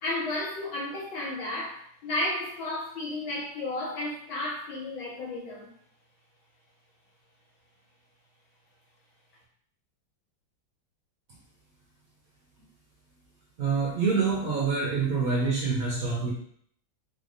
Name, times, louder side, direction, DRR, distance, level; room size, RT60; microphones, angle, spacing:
voice 1, 0.0-5.7, left 2 dB, 70° left, -5 dB, 2.1 m, -33 dB
voice 2, 13.6-16.3, right 4 dB, 55° right, -4 dB, 1.1 m, -26 dB
4.7 x 3.4 x 2.6 m, 0.63 s
omnidirectional pair, 2.3 m